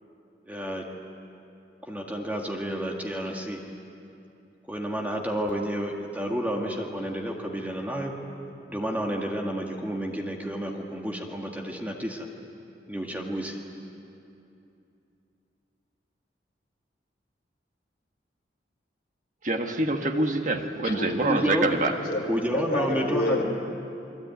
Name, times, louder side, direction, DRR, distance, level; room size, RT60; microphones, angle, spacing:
voice 1, 0.5-0.9 1.8-3.6 4.7-8.1 8.7-12.3 12.9-13.6 21.2-21.7 22.3-23.4, equal, 10° right, 0 dB, 1.9 m, -30 dB
voice 2, 19.4-21.9, right 2 dB, 45° right, 4 dB, 1.5 m, -25 dB
voice 3, 20.6-21.1 21.9-23.4, left 1 dB, 50° left, 0 dB, 4.7 m, -29 dB
29.0 x 22.0 x 9.4 m, 2.7 s
head